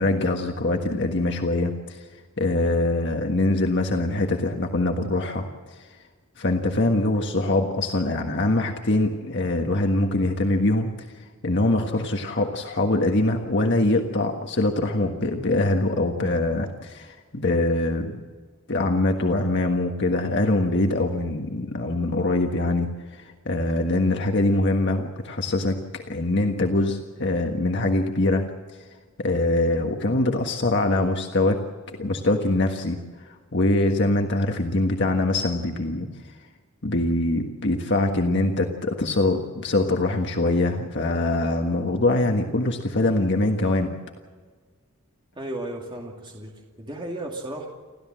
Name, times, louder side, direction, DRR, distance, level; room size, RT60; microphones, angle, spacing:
voice 1, 0.0-2.0 2.4-5.4 6.4-11.1 11.4-18.2 18.7-28.4 29.2-31.6 31.9-33.0 33.2-36.1 36.8-43.9, left 2 dB, 55° left, 3 dB, 1.6 m, -23 dB
voice 2, 45.3-47.7, right 1 dB, 25° right, 0 dB, 2.5 m, -34 dB
29.5 x 13.5 x 7.6 m, 1.5 s
head